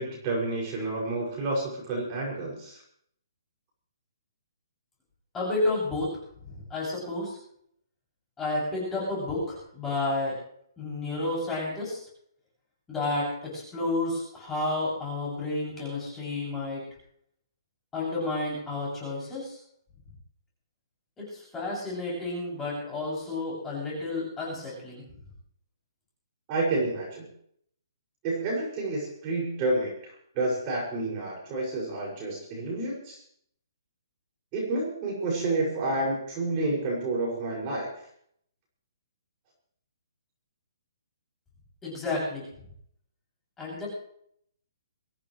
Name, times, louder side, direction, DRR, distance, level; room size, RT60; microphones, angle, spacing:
voice 1, 0.0-2.8 26.5-27.2 28.2-33.2 34.5-37.9, right 2 dB, 20° right, -3 dB, 6.3 m, -29 dB
voice 2, 5.3-6.1 6.4-7.4 8.4-10.4 10.8-12.0 12.9-16.8 17.9-19.6 21.2-25.0 41.8-42.5 43.6-43.9, left 2 dB, 10° left, -5 dB, 7.2 m, -31 dB
24.0 x 16.0 x 3.3 m, 0.67 s
hypercardioid pair, 170°, 2 cm